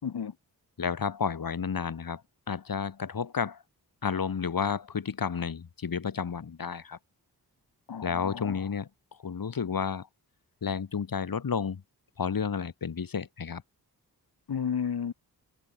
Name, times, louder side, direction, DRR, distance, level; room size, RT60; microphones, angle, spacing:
voice 1, 0.0-0.3 7.9-8.6 14.5-15.1, left 7 dB, 90° left, 4.6 m, -32 dB
voice 2, 0.8-2.2 2.5-3.6 4.0-7.0 8.0-8.9 9.2-10.1 10.6-11.8 12.2-13.6, left 6 dB, 65° left, 5.0 m, -31 dB
wide cardioid pair, 145°, 37 cm